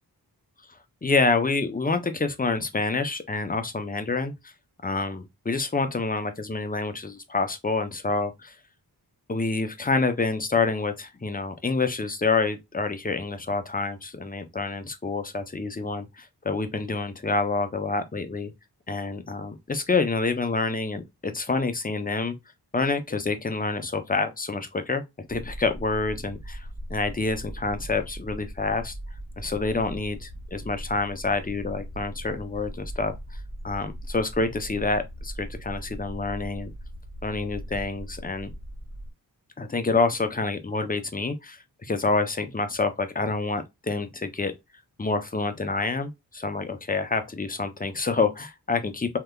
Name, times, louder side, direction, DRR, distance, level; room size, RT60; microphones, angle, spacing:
voice 1, 1.0-4.5 4.8-8.5 9.3-18.5 18.9-22.4 22.7-25.0 25.3-28.9 29.4-33.2 33.6-36.7 37.2-38.5 39.6-44.5 45.0-49.2, left 3 dB, 20° left, 0.5 m, -27 dB
sound 1, 25.3-39.1, equal, 10° right, 1.6 m, -39 dB
3.3 x 2.8 x 2.2 m
wide cardioid pair, 60°, 41 cm